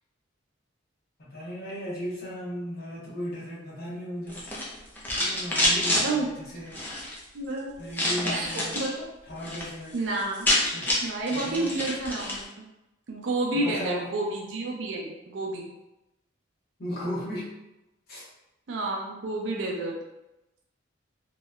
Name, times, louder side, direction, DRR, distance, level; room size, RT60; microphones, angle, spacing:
voice 1, 1.2-4.4 5.2-6.8 7.8-8.8 9.3-9.9 10.7-10.9 11.3-11.7 13.5-14.1 16.8-17.5 18.1-18.2, equal, 55° left, -6 dB, 0.8 m, -36 dB
sound 1, 4.3-6.0 6.7-7.2 7.9-8.9 9.3-9.7 9.9-10.0 10.2-12.4, left 1 dB, 10° left, 0.4 m, -27 dB
voice 2, 5.9-6.6 7.3-7.7 8.2-9.1 9.9-10.5 11.0-12.4 13.1-15.7 18.7-20.0, right 2 dB, 65° right, -1 dB, 0.4 m, -30 dB
2.7 x 2.1 x 2.3 m, 0.93 s
head